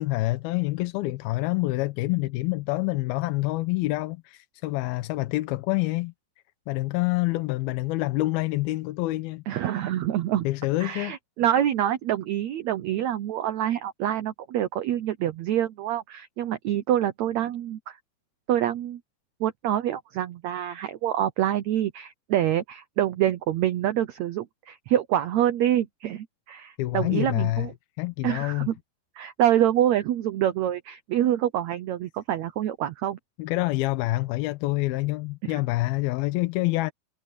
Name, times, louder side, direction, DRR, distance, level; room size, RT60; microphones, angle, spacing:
voice 1, 0.0-6.1 6.7-9.6 10.4-11.2 26.8-27.7 28.0-28.7 33.4-36.9, left 19 dB, 90° left, 2.7 m, -27 dB
voice 2, 9.5-10.5 10.8-18.0 18.5-19.0 19.4-27.7 28.2-28.7 29.1-33.2 35.4-35.5, right 11 dB, 75° right, 1.6 m, -26 dB
omnidirectional pair, 4.2 m